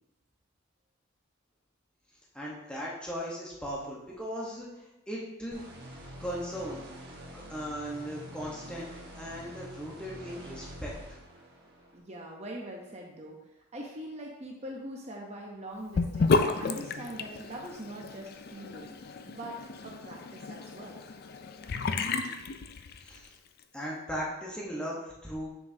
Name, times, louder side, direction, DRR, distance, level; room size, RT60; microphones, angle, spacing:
voice 1, 2.3-5.6 6.2-6.8 7.3-8.9 9.2-10.9 23.0-23.3 23.7-25.5, equal, 5° left, -5 dB, 1.0 m, -37 dB
sound 1, 5.5-12.0, right 1 dB, 50° right, 1.3 m, -46 dB
voice 2, 11.9-13.4 13.7-19.6 19.8-21.0, right 1 dB, 30° right, -1 dB, 0.7 m, -42 dB
Sink (filling or washing) / Bathtub (filling or washing), 15.9-23.3, left 4 dB, 50° left, 0.4 m, -32 dB
7.2 x 6.3 x 2.7 m, 0.93 s
head